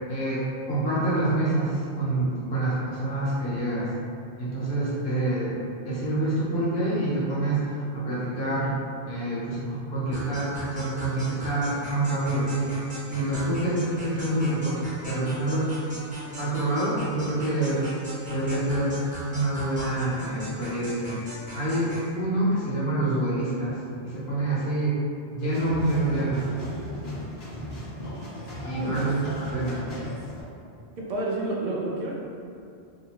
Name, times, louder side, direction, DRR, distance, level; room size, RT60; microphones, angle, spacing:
voice 1, 0.1-3.9 4.4-5.6 5.9-8.7 9.0-12.7 13.1-15.8 16.4-17.9 18.3-19.0 19.3-21.2 21.5-25.0 25.3-26.5 28.6-29.9, right 2 dB, 60° left, -8 dB, 1.1 m, -27 dB
sound 1, 10.1-22.1, equal, 10° right, 0.8 m, -39 dB
sound 2, 25.4-30.4, equal, 40° left, 0.7 m, -37 dB
voice 2, 31.0-32.1, right 2 dB, 50° right, -4 dB, 0.6 m, -30 dB
2.7 x 2.6 x 2.8 m, 2.5 s
omnidirectional pair, 1.2 m